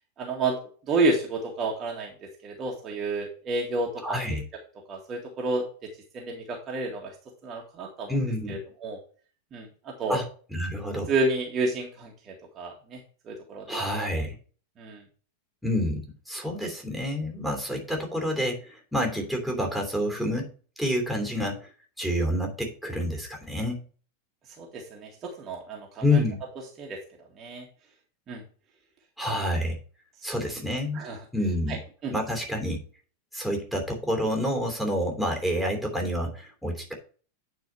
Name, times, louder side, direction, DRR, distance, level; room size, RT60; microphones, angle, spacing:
voice 1, 0.2-0.6 0.9-2.1 2.4-4.2 4.9-5.6 6.1-7.1 7.4-8.2 8.5-9.0 9.5-10.2 11.1-13.0 13.3-13.8 14.1-14.2 14.8-15.0 24.6-26.2 26.8-27.0 27.4-27.7 28.3-28.4 30.9-31.2 31.7-31.8 32.0-32.1, right 2 dB, 30° right, -1 dB, 1.9 m, -30 dB
voice 2, 4.0-4.4 8.1-8.6 10.1-10.2 10.5-11.1 13.7-14.4 15.6-20.5 20.8-21.7 22.0-23.8 26.0-26.4 29.2-29.8 30.2-31.0 31.3-31.8 32.1-32.8 33.3-36.9, left 1 dB, ahead, 1 dB, 3.0 m, -28 dB
9.3 x 4.6 x 4.5 m, 0.40 s
figure-of-eight pair, 90°, 0 cm